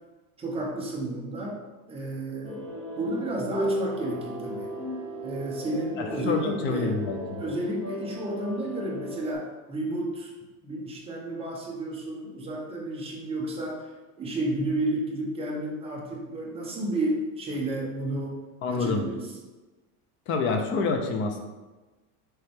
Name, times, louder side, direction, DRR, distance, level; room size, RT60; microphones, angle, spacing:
voice 1, 0.4-1.6 1.9-2.6 2.9-4.7 5.2-7.0 7.4-10.3 10.6-13.9 14.2-18.4 18.7-19.3, right 1 dB, 15° right, -3 dB, 0.9 m, -31 dB
sound 1, 2.4-9.3, right 1 dB, 10° left, 2.1 m, -35 dB
voice 2, 6.0-7.4 18.6-19.0 20.3-21.4, left 4 dB, 25° left, 5 dB, 0.6 m, -27 dB
6.6 x 4.5 x 3.6 m, 1.2 s
cardioid pair, 170°, 45 cm